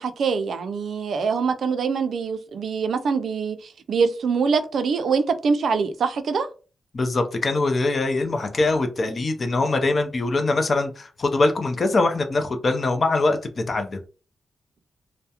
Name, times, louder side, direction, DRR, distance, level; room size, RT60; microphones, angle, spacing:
voice 1, 0.0-6.5, right 5 dB, 70° right, 0.3 m, -24 dB
voice 2, 6.9-13.4 13.7-14.0, left 2 dB, 40° left, 0.5 m, -22 dB
2.3 x 2.0 x 2.7 m
wide cardioid pair, 125°, 0 cm